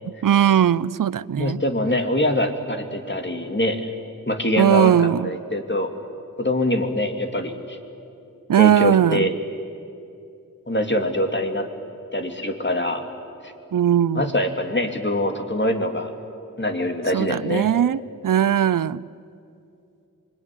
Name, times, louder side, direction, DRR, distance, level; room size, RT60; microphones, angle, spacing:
voice 1, 0.2-1.6 4.5-5.3 8.5-9.3 13.7-14.3 17.1-19.0, right 9 dB, 70° right, 0.5 m, -19 dB
voice 2, 1.4-3.9 4.3-4.9 5.2-5.9 6.4-7.8 8.6-9.3 10.7-11.7 12.1-13.0 13.4-13.5 14.1-16.1 16.6-17.7, left 1 dB, 35° left, 2.6 m, -24 dB
25.5 x 22.0 x 10.0 m
wide cardioid pair, 50°, 34 cm